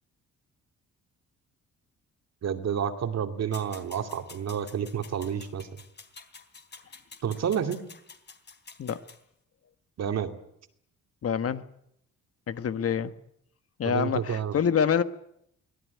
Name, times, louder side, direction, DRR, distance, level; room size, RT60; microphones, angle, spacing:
voice 1, 2.4-5.7 7.2-7.8 10.0-10.3 13.8-14.6, right 8 dB, 60° right, 2.6 m, -29 dB
sound 1, 3.5-9.2, left 4 dB, 35° left, 3.5 m, -49 dB
voice 2, 11.2-11.6 12.5-13.1 13.8-15.0, left 7 dB, 50° left, 1.4 m, -26 dB
24.0 x 17.0 x 9.6 m
cardioid pair, 95°, 29 cm